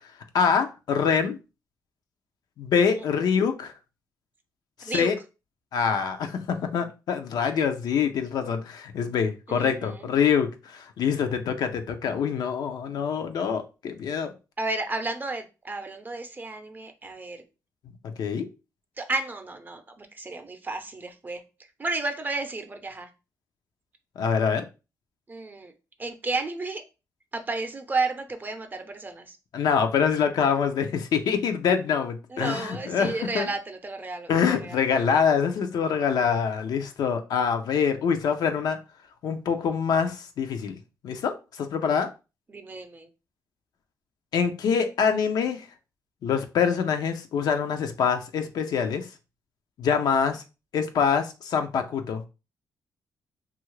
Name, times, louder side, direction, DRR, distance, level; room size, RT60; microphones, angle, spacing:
voice 1, 0.3-1.4 2.6-3.7 4.8-5.2 5.7-14.3 18.2-18.4 24.2-24.6 29.5-33.5 34.3-38.8 39.2-40.8 41.0-42.1 44.3-45.7 46.2-49.1 49.8-50.4 50.7-52.2, left 6 dB, 70° left, 0.5 m, -25 dB
voice 2, 14.6-17.4 19.0-21.4 21.8-23.1 25.3-25.7 26.0-26.8 27.3-29.4 32.3-34.8 42.5-43.1, right 3 dB, 25° right, 0.6 m, -32 dB
2.7 x 2.4 x 3.1 m
cardioid pair, 85°, 7 cm